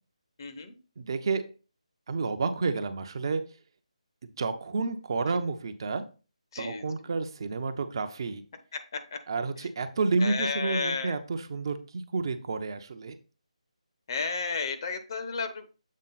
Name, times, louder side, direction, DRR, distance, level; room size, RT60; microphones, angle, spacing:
voice 1, 0.4-0.7 6.5-6.9 8.7-9.2 9.6-9.7 10.2-11.2 14.1-15.7, left 4 dB, 40° left, 7 dB, 0.9 m, -32 dB
voice 2, 1.0-1.4 2.1-3.4 4.4-6.0 6.6-8.4 9.3-13.2, right 4 dB, 40° right, 8 dB, 0.6 m, -30 dB
7.4 x 3.6 x 4.0 m, 0.34 s
figure-of-eight pair, 150°, 4 cm